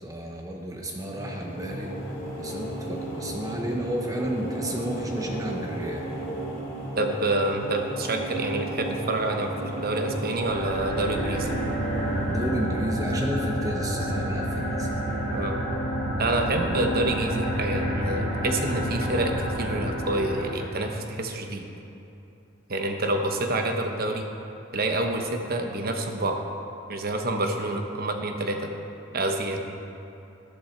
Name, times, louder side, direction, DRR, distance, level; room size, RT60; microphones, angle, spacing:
voice 1, 0.0-1.9 2.4-6.1 12.2-14.9, equal, 15° right, 0 dB, 0.8 m, -32 dB
sound 1, 0.7-16.1, right 1 dB, 55° left, 2.6 m, -36 dB
voice 2, 7.0-11.5 14.0-14.1 15.3-15.6 16.2-21.7 22.7-24.3 24.7-26.4 26.9-28.6 29.1-29.6, right 2 dB, 50° right, 4 dB, 1.1 m, -27 dB
sound 2, 10.4-20.9, equal, 80° right, 2.7 m, -29 dB
12.5 x 12.0 x 4.5 m, 2.9 s
head